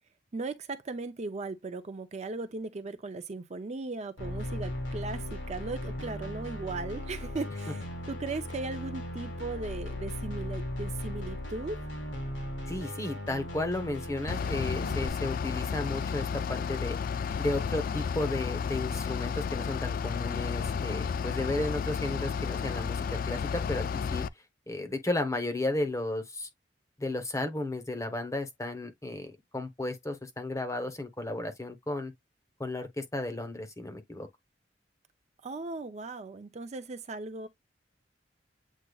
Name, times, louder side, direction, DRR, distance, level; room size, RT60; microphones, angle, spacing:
voice 1, 0.3-11.8 35.4-37.5, right 3 dB, 40° right, 0.5 m, -37 dB
sound 1, 4.2-15.1, left 1 dB, 80° left, 1.7 m, -37 dB
voice 2, 12.7-17.0 17.4-24.3 24.7-26.5 27.0-32.1 32.6-34.3, left 2 dB, 15° left, 0.9 m, -34 dB
Bus / Idling, 14.3-24.3, left 6 dB, 50° left, 0.3 m, -32 dB
8.2 x 2.8 x 2.3 m
head